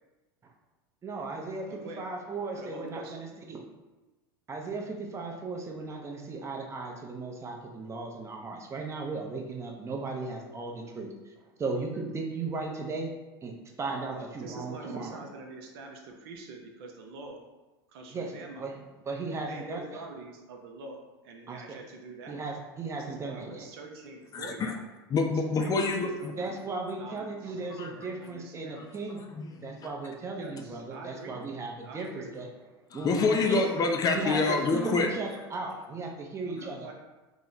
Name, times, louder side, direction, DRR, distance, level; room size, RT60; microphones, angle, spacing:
voice 1, 1.0-3.6 4.5-11.3 11.6-13.1 13.4-15.2 18.1-18.3 18.6-18.7 19.1-20.0 21.5-21.8 22.3-23.7 26.4-29.2 29.6-32.5 32.9-33.7 34.1-36.9, right 3 dB, 20° right, 1 dB, 0.6 m, -36 dB
voice 2, 1.6-2.0 2.5-3.3 14.1-17.4 17.9-18.7 19.3-22.4 22.9-24.8 25.6-26.3 26.9-27.6 27.9-28.9 30.4-31.4 31.8-32.3 33.3-33.5 34.1-34.9 36.4-36.9, right 3 dB, 70° right, 2 dB, 0.6 m, -45 dB
voice 3, 24.3-24.7 25.1-26.3 27.8-27.9 29.2-29.7 32.9-35.1, left 4 dB, 30° left, 3 dB, 0.4 m, -27 dB
2.9 x 2.1 x 3.8 m, 1.1 s
hypercardioid pair, 95°, 13 cm